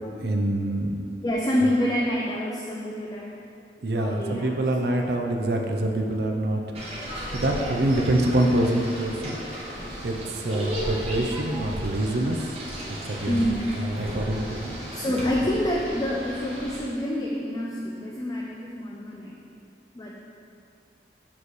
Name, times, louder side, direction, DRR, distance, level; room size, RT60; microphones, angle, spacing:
voice 1, 0.2-1.0 3.8-6.6 7.3-9.4 10.0-12.4 13.1-14.8, right 1 dB, 60° right, 3 dB, 0.5 m, -25 dB
voice 2, 1.2-3.5 4.0-4.6 13.3-13.7 14.9-19.4 19.9-20.2, left 1 dB, 20° left, -3 dB, 0.4 m, -27 dB
sound 1, 6.7-16.8, equal, 35° right, 1.1 m, -35 dB
7.3 x 3.1 x 4.1 m, 2.6 s
head